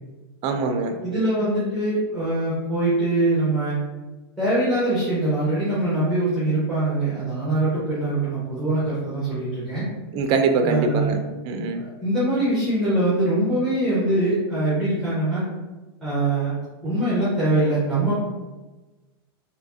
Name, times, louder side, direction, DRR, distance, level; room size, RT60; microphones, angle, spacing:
voice 1, 0.4-1.0 10.1-11.2 11.4-11.8, right 4 dB, 35° right, 5 dB, 0.4 m, -23 dB
voice 2, 1.0-3.8 4.4-9.8 10.6-11.2 11.8-15.4 16.0-16.5 16.8-18.1, right 2 dB, ahead, -9 dB, 0.9 m, -23 dB
3.3 x 2.7 x 2.6 m, 1.2 s
supercardioid pair, 145°, 13 cm